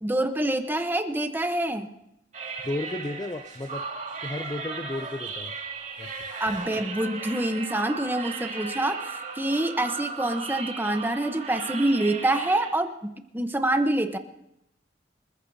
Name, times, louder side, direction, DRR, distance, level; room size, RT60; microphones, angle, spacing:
voice 1, 0.0-1.9 6.4-14.2, right 1 dB, 10° right, 8 dB, 0.9 m, -26 dB
sound 1, 2.3-12.7, right 4 dB, 45° right, 2.2 m, -36 dB
voice 2, 2.6-3.9 4.2-5.6 6.0-6.1, left 2 dB, 25° left, 9 dB, 0.5 m, -33 dB
27.0 x 14.5 x 2.7 m, 0.80 s
head